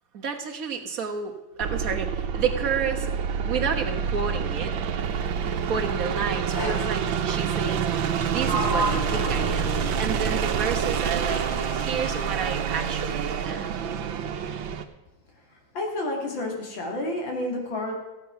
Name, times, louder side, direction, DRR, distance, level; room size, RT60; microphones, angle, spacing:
voice 1, 0.1-3.1 3.5-4.7 5.7-7.9 8.3-11.4 11.7-13.7, right 6 dB, 50° right, 3 dB, 1.7 m, -31 dB
sound 1, 1.6-14.8, right 7 dB, 85° right, 1.7 m, -27 dB
Sliding door, 6.5-7.0 8.0-10.4 10.9-12.3, right 1 dB, 10° left, 1.8 m, -32 dB
voice 2, 15.7-17.9, left 1 dB, 80° left, 1 dB, 3.2 m, -30 dB
15.0 x 8.7 x 5.9 m, 1.1 s
omnidirectional pair, 2.1 m